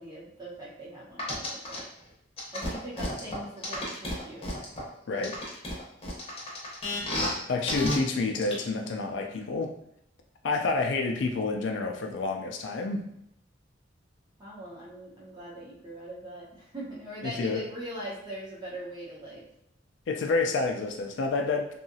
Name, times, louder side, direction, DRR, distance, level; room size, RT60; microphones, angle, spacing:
voice 1, 0.0-1.9 2.5-4.5 14.4-19.4, right 1 dB, 20° right, -7 dB, 0.9 m, -41 dB
sound 1, 1.2-1.8 2.4-4.8 5.2-7.3 7.7-8.0 8.4-8.5, left 1 dB, 30° left, 0.8 m, -31 dB
voice 2, 5.1-5.4 7.5-9.7 10.4-13.1 17.2-17.6 20.1-21.7, left 3 dB, 70° left, 4 dB, 0.4 m, -29 dB
2.8 x 2.4 x 2.6 m, 0.75 s
head